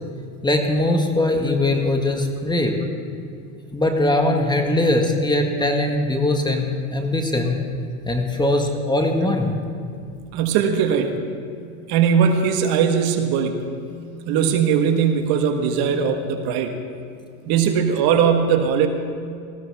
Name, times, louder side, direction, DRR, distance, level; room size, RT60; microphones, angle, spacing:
voice 1, 0.4-2.8 3.7-7.6 8.1-9.5, left 1 dB, 10° left, 3 dB, 1.6 m, -21 dB
voice 2, 10.3-11.1 11.9-13.6 14.3-16.7 17.5-18.9, right 7 dB, 60° right, 6 dB, 1.6 m, -19 dB
19.5 x 15.0 x 3.6 m, 2.4 s
supercardioid pair, 110°, 42 cm